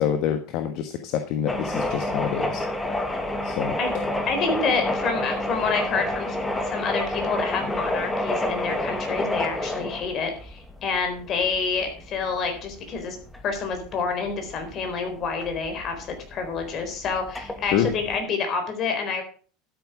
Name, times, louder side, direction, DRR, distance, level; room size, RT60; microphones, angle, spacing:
voice 1, 0.0-2.6 3.4-3.8 17.7-17.9, left 9 dB, 55° left, 7 dB, 1.3 m, -26 dB
sound 1, 1.5-18.2, left 1 dB, 10° left, 1.7 m, -29 dB
voice 2, 4.3-6.4 6.6-13.2 13.4-19.2, left 5 dB, 35° left, 5 dB, 4.1 m, -28 dB
12.5 x 8.6 x 4.9 m, 0.40 s
supercardioid pair, 135°, 0 cm